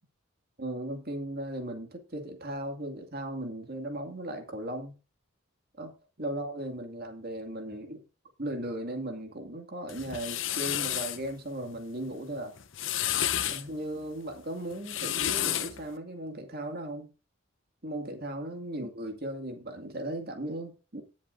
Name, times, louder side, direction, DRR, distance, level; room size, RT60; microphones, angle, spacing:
voice 1, 0.6-5.0 5.8-5.9 6.2-8.0 8.4-12.5 13.5-17.1 17.8-21.0, right 1 dB, 50° right, 5 dB, 2.4 m, -37 dB
sound 1, 9.9-11.2 12.6-13.6 14.7-15.8, left 11 dB, 65° left, 0.9 m, -30 dB
18.0 x 7.4 x 2.7 m, 0.32 s
head